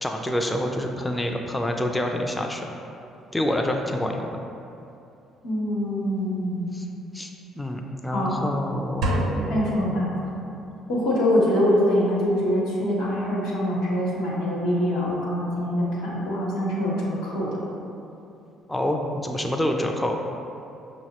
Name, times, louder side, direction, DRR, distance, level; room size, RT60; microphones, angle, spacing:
voice 1, 0.0-2.7 3.3-4.3 6.7-6.9 7.1-7.3 7.6-9.1 18.7-20.2, left 1 dB, 10° left, 2 dB, 0.3 m, -27 dB
voice 2, 5.4-6.7 8.1-8.4 9.5-10.1 10.9-17.5, left 1 dB, 85° left, -7 dB, 0.9 m, -24 dB
sound 1, 9.0-10.8, right 1 dB, 75° right, 0.6 m, -28 dB
5.7 x 2.0 x 2.8 m, 2.8 s
hypercardioid pair, 60°, 0 cm